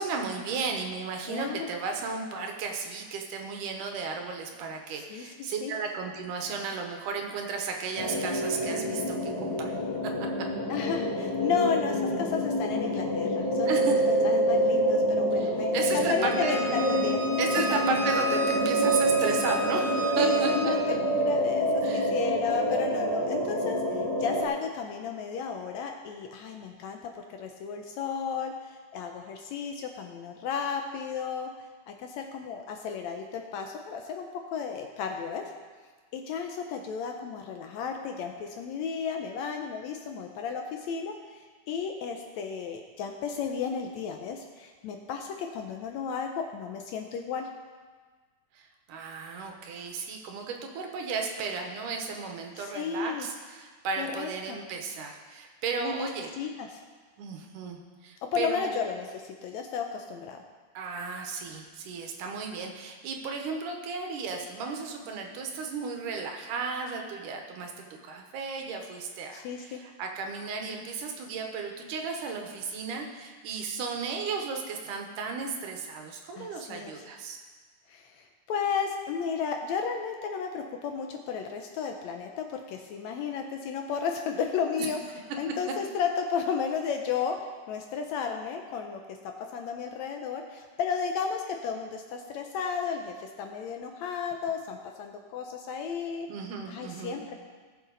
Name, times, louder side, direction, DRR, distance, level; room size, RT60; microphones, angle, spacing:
voice 1, 0.0-10.3 13.7-14.0 15.4-16.6 17.4-20.5 21.8-22.1 48.5-56.3 57.2-58.8 60.7-77.4 96.3-97.2, right 4 dB, 80° right, 3 dB, 2.6 m, -34 dB
voice 2, 1.3-1.7 4.9-5.7 10.7-14.0 14.2-17.2 20.2-31.5 31.9-35.4 36.1-47.5 52.6-53.3 54.0-54.6 55.8-56.1 56.4-56.8 58.3-60.4 69.3-69.8 76.4-77.0 77.9-85.0 85.4-87.4 87.7-89.0 89.5-96.3 96.7-97.3, left 6 dB, 75° left, 4 dB, 1.7 m, -33 dB
sound 1, 8.0-24.5, equal, 15° left, 0.9 m, -27 dB
Bowed string instrument, 16.2-20.7, right 1 dB, 30° right, 1.2 m, -34 dB
17.5 x 6.8 x 3.9 m, 1.5 s
omnidirectional pair, 3.7 m